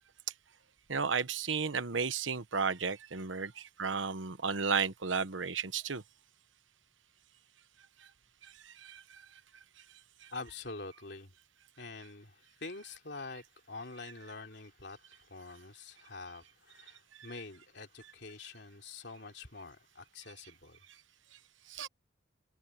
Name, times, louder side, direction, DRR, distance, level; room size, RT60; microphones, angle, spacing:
voice 1, 0.9-6.0 8.6-9.0 21.7-21.9, right 5 dB, 90° right, 1.1 m, -33 dB
voice 2, 10.3-11.3 11.8-20.8, left 3 dB, 60° left, 3.3 m, -46 dB
head